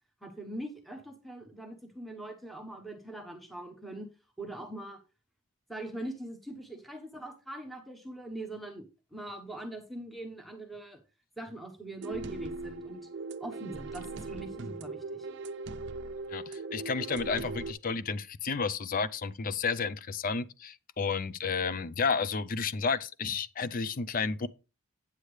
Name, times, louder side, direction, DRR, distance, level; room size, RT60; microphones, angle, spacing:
voice 1, 0.2-4.1 4.4-5.0 5.7-11.0 11.4-13.1 13.4-15.3, right 1 dB, ahead, 1.1 m, -42 dB
sound 1, 12.0-17.7, right 3 dB, 55° right, 0.6 m, -39 dB
voice 2, 16.3-24.5, left 5 dB, 40° left, 0.5 m, -31 dB
8.8 x 8.2 x 3.3 m
head